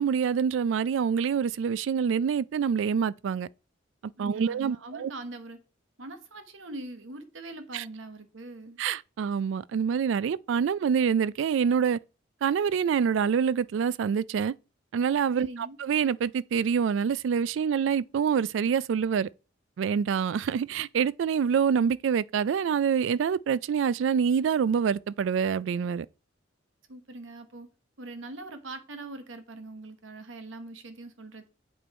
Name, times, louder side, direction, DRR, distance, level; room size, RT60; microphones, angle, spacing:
voice 1, 0.0-3.5 4.2-5.1 7.7-7.8 8.8-12.0 12.4-14.5 14.9-15.5 15.8-19.3 19.8-26.1, right 7 dB, 70° right, 0.3 m, -26 dB
voice 2, 4.2-5.6 6.0-8.8 15.4-15.8 26.9-27.7 28.0-31.5, right 2 dB, 90° right, 1.1 m, -42 dB
7.9 x 5.3 x 4.3 m
head